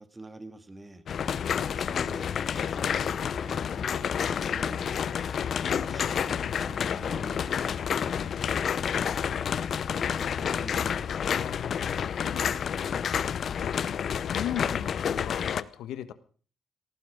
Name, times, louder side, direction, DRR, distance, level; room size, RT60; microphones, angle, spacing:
voice 1, 0.0-5.1 5.9-11.1, right 2 dB, 15° right, 2.1 m, -47 dB
sound 1, 1.1-15.6, left 7 dB, 55° left, 0.7 m, -29 dB
voice 2, 5.6-6.1 11.3-13.2 13.6-16.1, left 11 dB, 85° left, 1.3 m, -39 dB
18.0 x 15.0 x 5.2 m
cardioid pair, 90°, 0 cm